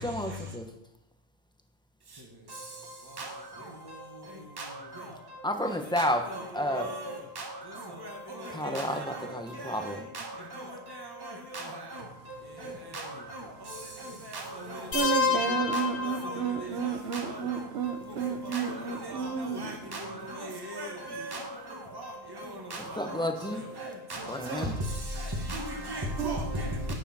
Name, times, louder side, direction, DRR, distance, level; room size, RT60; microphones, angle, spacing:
voice 1, 0.0-0.7 5.4-6.2 6.5-6.8 8.5-9.0 9.3-10.0 12.6-12.7 23.0-23.6 24.3-24.7, equal, 5° left, 5 dB, 1.2 m, -30 dB
voice 2, 6.0-6.4 6.7-7.5 8.0-8.1 8.4-9.3 9.6-10.3 10.5-10.7 11.2-12.0 12.6-13.4 14.3-14.9 15.7-17.4 18.2-21.4 21.9-22.1 22.7-23.2 23.5-24.6 25.2-26.9, right 1 dB, 20° right, 0 dB, 1.7 m, -37 dB
sound 1, 14.9-16.9, left 5 dB, 60° left, 1.7 m, -29 dB
voice 3, 14.9-19.7 26.2-26.4, right 7 dB, 75° right, 8 dB, 1.3 m, -32 dB
12.0 x 10.0 x 4.4 m, 0.78 s
omnidirectional pair, 1.1 m